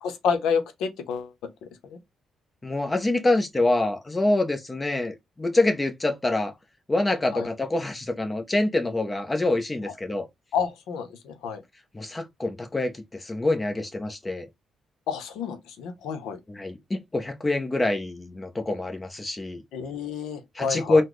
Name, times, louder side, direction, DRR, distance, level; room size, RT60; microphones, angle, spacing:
voice 1, 0.0-1.3 1.6-2.0 7.3-7.5 10.5-11.6 15.1-16.4 19.7-21.0, left 6 dB, 85° left, 0.7 m, -29 dB
voice 2, 2.6-6.5 6.9-10.3 11.9-14.4 16.5-19.6 20.5-21.0, left 2 dB, 20° left, 0.7 m, -25 dB
3.8 x 2.1 x 3.1 m
cardioid pair, 90°, 0 cm